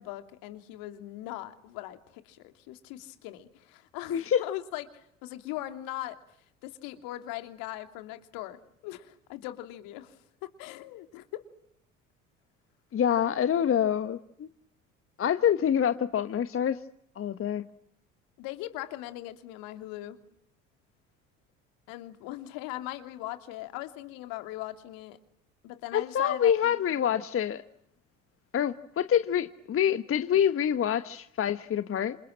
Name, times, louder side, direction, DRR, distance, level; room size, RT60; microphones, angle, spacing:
voice 1, 0.0-6.2 6.6-8.6 8.8-10.2 10.4-11.4 18.4-20.2 21.9-25.2 25.6-27.0, left 15 dB, 60° left, 3.0 m, -40 dB
voice 2, 4.1-4.4 12.9-14.5 15.2-16.8 17.2-17.6 25.9-27.6 28.5-32.2, left 9 dB, 35° left, 1.3 m, -26 dB
28.0 x 27.5 x 7.6 m
figure-of-eight pair, 60°, 38 cm